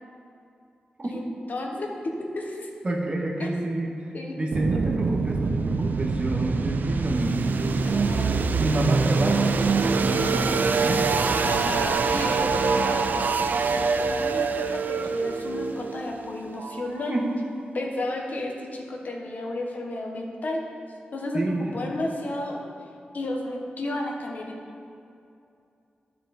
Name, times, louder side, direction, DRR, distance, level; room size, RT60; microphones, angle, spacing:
voice 1, 1.0-2.7 3.4-3.5 4.1-4.3 4.7-4.8 7.8-8.3 11.4-17.2 17.7-20.6 21.1-22.6 23.1-24.5, left 2 dB, 55° left, 1 dB, 1.2 m, -33 dB
voice 2, 2.8-4.1 4.4-7.6 8.6-11.5 17.1-17.3 21.3-21.7, right 1 dB, 35° right, -2 dB, 1.5 m, -28 dB
sound 1, 4.5-17.3, right 4 dB, 65° right, 0.4 m, -25 dB
11.5 x 6.0 x 4.3 m, 2.5 s
wide cardioid pair, 120°, 3 cm